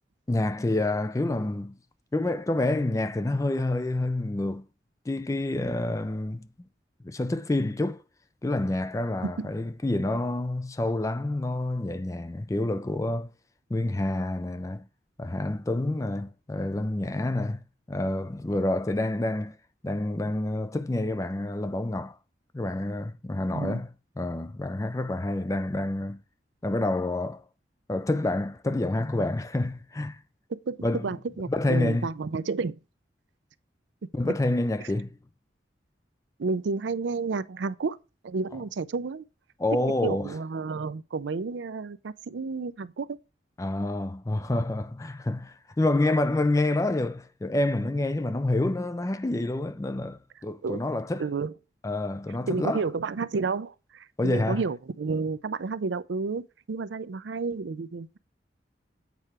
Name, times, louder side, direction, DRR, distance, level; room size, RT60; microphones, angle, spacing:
voice 1, 0.3-1.8 2.1-4.7 5.1-6.5 7.0-8.0 8.4-13.3 13.7-14.9 15.2-19.6 19.8-22.2 22.5-23.9 24.2-26.2 26.6-27.4 27.9-30.2 30.8-31.2 31.5-32.1 34.1-35.2 39.6-40.3 43.6-51.3 51.8-52.8 54.2-54.6, left 2 dB, 15° left, 0.4 m, -28 dB
voice 2, 31.0-32.8 36.4-38.0 38.2-39.2 40.0-43.2 50.6-50.8 51.2-51.5 52.5-58.2, right 4 dB, 90° right, 0.5 m, -31 dB
8.3 x 4.8 x 4.2 m
head